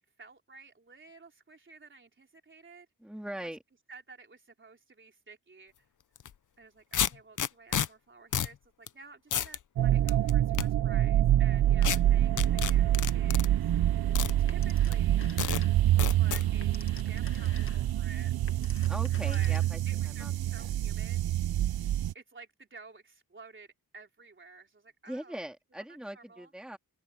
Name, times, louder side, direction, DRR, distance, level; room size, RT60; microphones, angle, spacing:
voice 1, 0.2-2.9 3.4-3.5 3.9-5.7 6.6-13.7 14.4-15.3 15.7-18.3 19.2-19.6 19.9-21.2 21.5-25.4 25.9-26.5, right 3 dB, 30° right, 3.6 m, -52 dB
voice 2, 3.0-3.6 18.9-19.8 20.2-20.3 20.6-20.7 25.1-26.8, right 1 dB, ahead, 2.3 m, -40 dB
sound 1, 6.2-6.3 6.9-7.9 8.3-8.6 8.9-9.0 9.3-9.6 10.1-10.7 11.8-12.0 12.4-13.5 14.2-14.3 14.9-15.0 15.4-15.6 16.0-16.4, left 9 dB, 55° left, 0.6 m, -30 dB
Shadow Maker-Closet, 9.8-22.1, right 12 dB, 75° right, 0.5 m, -26 dB
Telephone, 14.5-16.0 16.4-20.0, left 4 dB, 35° left, 1.8 m, -50 dB
open air
wide cardioid pair, 175°, 37 cm